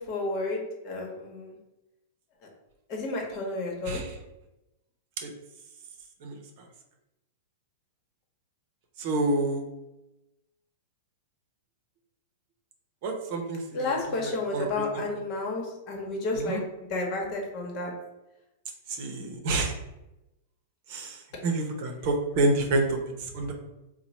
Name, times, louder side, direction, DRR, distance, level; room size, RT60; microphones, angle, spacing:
voice 1, 0.0-1.6 2.9-4.0 13.7-16.6 16.9-17.9 23.4-23.5, left 2 dB, 45° left, 0 dB, 1.1 m, -31 dB
voice 2, 9.0-9.6 13.0-13.6 14.5-14.7 16.5-16.6 19.0-19.7 20.9-21.2 21.4-23.0 23.3-23.5, right 2 dB, 55° right, 3 dB, 0.7 m, -27 dB
2.9 x 2.1 x 4.1 m, 0.96 s
hypercardioid pair, 110°, 0 cm